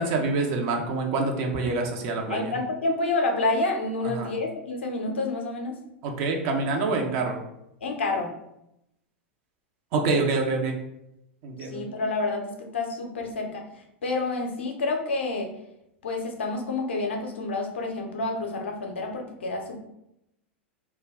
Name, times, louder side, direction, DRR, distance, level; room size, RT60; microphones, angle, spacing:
voice 1, 0.0-2.5 4.1-4.3 6.0-7.4 9.9-10.8 11.4-11.8, right 3 dB, 45° right, 2 dB, 0.5 m, -26 dB
voice 2, 2.3-5.8 7.8-8.3 11.7-15.5 16.0-19.8, left 3 dB, 70° left, 2 dB, 0.5 m, -29 dB
2.2 x 2.1 x 3.4 m, 0.82 s
figure-of-eight pair, 90°, 6 cm